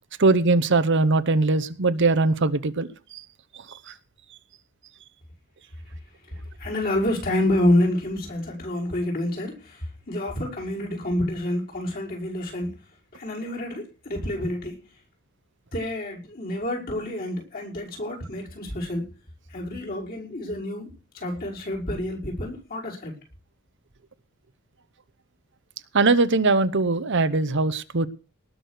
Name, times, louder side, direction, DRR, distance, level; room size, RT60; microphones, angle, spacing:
voice 1, 0.2-3.2 3.5-3.9 25.9-28.1, right 3 dB, 55° right, 13 dB, 0.9 m, -21 dB
voice 2, 6.6-12.7 13.1-14.9 15.7-19.1 19.5-23.1, left 1 dB, 45° left, -2 dB, 5.8 m, -28 dB
19.0 x 6.4 x 6.6 m, 0.33 s
head